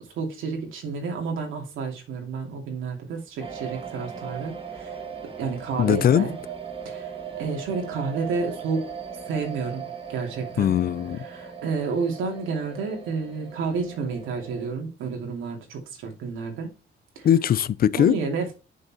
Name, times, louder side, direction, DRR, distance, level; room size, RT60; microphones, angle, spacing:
voice 1, 0.1-5.0 5.4-6.4 6.8-8.9 9.2-10.7 11.2-16.7 17.2-17.3 18.0-18.5, right 5 dB, 85° right, 2.7 m, -30 dB
sound 1, 3.4-14.7, right 6 dB, 30° right, 1.9 m, -38 dB
voice 2, 5.8-6.3 10.6-11.2 17.2-18.2, left 10 dB, 50° left, 0.5 m, -20 dB
6.5 x 5.6 x 4.3 m
cardioid pair, 90°, 20 cm